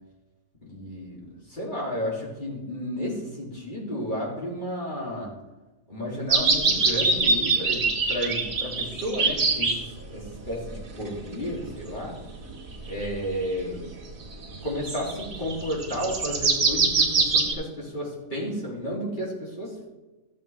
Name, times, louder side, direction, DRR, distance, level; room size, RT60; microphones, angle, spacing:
voice 1, 0.6-5.3 5.9-12.1 12.8-13.9 14.6-19.9, equal, 35° left, -5 dB, 3.0 m, -32 dB
sound 1, 6.3-9.8 10.5-11.7 12.2-13.2 13.6-13.7 14.4-17.5, right 3 dB, 75° right, 2.1 m, -24 dB
14.5 x 7.4 x 3.5 m, 1.1 s
omnidirectional pair, 1.5 m